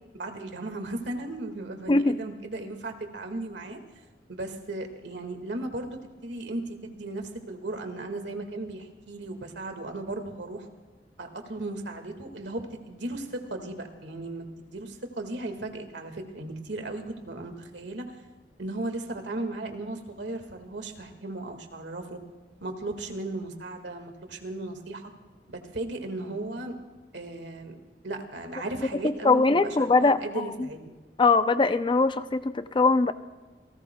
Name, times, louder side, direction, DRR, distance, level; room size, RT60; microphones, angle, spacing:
voice 1, 0.1-3.8 4.3-10.7 11.2-18.1 18.6-22.2 22.6-25.0 25.5-26.7 27.1-31.0, right 2 dB, 80° right, 5 dB, 1.9 m, -36 dB
voice 2, 29.0-30.7 31.2-33.1, left 3 dB, 30° left, 11 dB, 0.5 m, -22 dB
28.5 x 18.5 x 2.3 m, 1.3 s
head